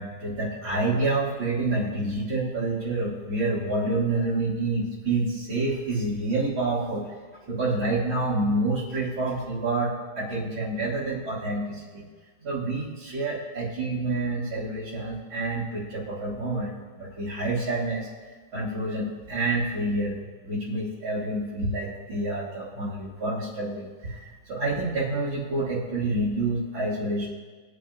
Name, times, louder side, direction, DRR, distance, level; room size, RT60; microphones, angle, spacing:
voice 1, 0.0-7.1 7.5-12.1 12.4-18.1 18.5-27.3, right 2 dB, 75° right, -9 dB, 2.5 m, -28 dB
19.5 x 8.9 x 2.6 m, 1.4 s
omnidirectional pair, 2.3 m